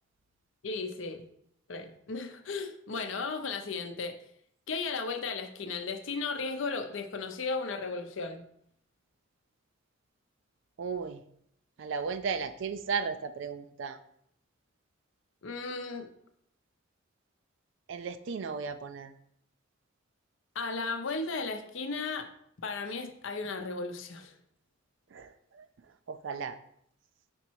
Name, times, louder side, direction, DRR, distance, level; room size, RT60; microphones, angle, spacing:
voice 1, 0.6-1.3 1.7-4.2 4.7-8.4 15.4-16.1 20.5-22.3 22.6-24.3, left 4 dB, 65° left, 7 dB, 0.6 m, -35 dB
voice 2, 10.8-11.2 11.8-14.0 17.9-19.1 25.1-25.6 26.1-26.6, right 5 dB, 65° right, 10 dB, 0.4 m, -35 dB
5.2 x 4.2 x 4.6 m, 0.69 s
head